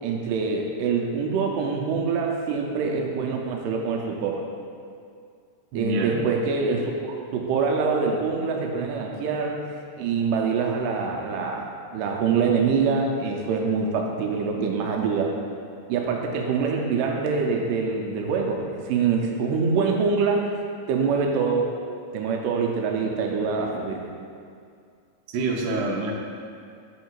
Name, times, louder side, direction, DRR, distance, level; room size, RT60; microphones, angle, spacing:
voice 1, 0.0-4.4 5.8-9.6 10.0-15.3 15.9-20.5 20.9-21.7 22.1-24.0, right 5 dB, 90° right, 1 dB, 2.2 m, -25 dB
voice 2, 5.7-6.2 25.3-26.1, right 2 dB, 75° right, -1 dB, 2.1 m, -26 dB
7.8 x 3.6 x 4.5 m, 2.3 s
omnidirectional pair, 3.8 m